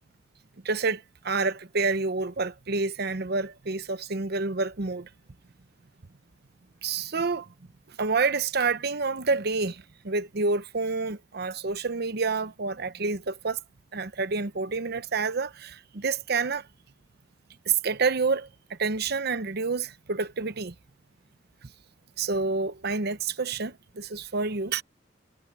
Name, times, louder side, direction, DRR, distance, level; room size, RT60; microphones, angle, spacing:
voice 1, 0.6-5.1 6.8-7.5 7.9-13.6 13.9-16.7 17.7-20.7 22.2-24.8, right 4 dB, 60° right, 0.9 m, -28 dB
head